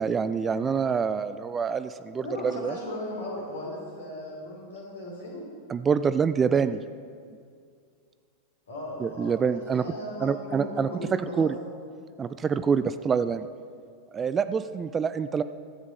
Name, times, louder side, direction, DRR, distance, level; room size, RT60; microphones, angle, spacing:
voice 1, 0.0-2.7 5.7-6.8 9.0-9.8 10.2-10.9 11.4-11.5 12.2-13.5 14.1-15.4, right 6 dB, 20° right, 12 dB, 0.3 m, -26 dB
voice 2, 2.2-5.5 8.7-11.5, left 1 dB, 65° left, -3 dB, 3.1 m, -37 dB
12.5 x 8.1 x 5.3 m, 2.2 s
figure-of-eight pair, 90°, 0 cm